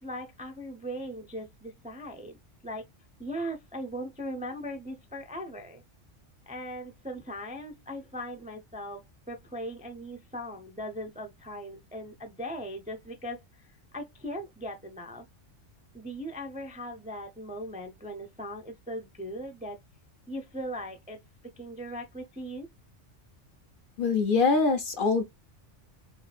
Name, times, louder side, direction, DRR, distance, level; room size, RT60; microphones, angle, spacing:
voice 1, 0.0-2.9 3.2-5.8 6.5-13.7 13.9-15.3 15.9-19.8 20.3-21.2 21.4-22.7, equal, 10° right, 0.3 m, -39 dB
voice 2, 24.0-25.2, left 4 dB, 55° left, 0.6 m, -24 dB
4.4 x 2.4 x 3.4 m
omnidirectional pair, 1.2 m